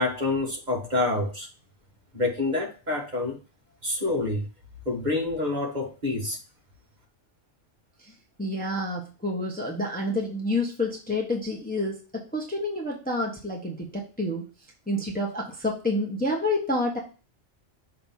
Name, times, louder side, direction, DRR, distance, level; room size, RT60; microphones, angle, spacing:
voice 1, 0.0-1.5 2.1-3.4 3.8-4.5 4.9-6.4, left 2 dB, 35° right, -1 dB, 1.6 m, -27 dB
voice 2, 8.4-14.4 14.9-17.0, left 1 dB, 5° left, -1 dB, 1.1 m, -28 dB
6.4 x 3.0 x 5.4 m, 0.33 s
omnidirectional pair, 1.3 m